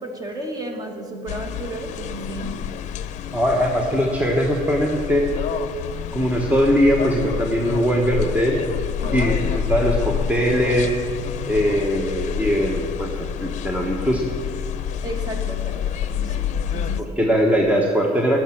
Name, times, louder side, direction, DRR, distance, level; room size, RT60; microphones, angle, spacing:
voice 1, 0.0-2.6 9.0-9.3 15.0-17.2, right 1 dB, 25° right, 3 dB, 1.7 m, -33 dB
sound 1, 1.3-17.0, left 9 dB, 55° left, 0.6 m, -28 dB
voice 2, 3.3-5.3 6.1-8.6 9.1-11.0 11.5-14.3 17.0-18.4, equal, 10° right, 0 dB, 1.1 m, -20 dB
10.0 x 6.0 x 7.6 m, 2.2 s
supercardioid pair, 90°, 14 cm